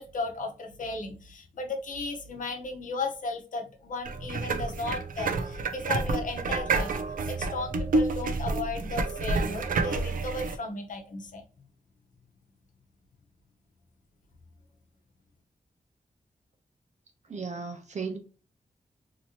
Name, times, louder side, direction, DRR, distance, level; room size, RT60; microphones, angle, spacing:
voice 1, 0.0-6.9 7.3-11.4, left 3 dB, 70° left, 3 dB, 0.8 m, -35 dB
sound 1, 4.0-10.6, right 3 dB, 90° right, 0.5 m, -29 dB
voice 2, 17.3-18.2, right 5 dB, 55° right, 5 dB, 0.8 m, -35 dB
2.9 x 2.7 x 2.9 m, 0.35 s
wide cardioid pair, 160°, 14 cm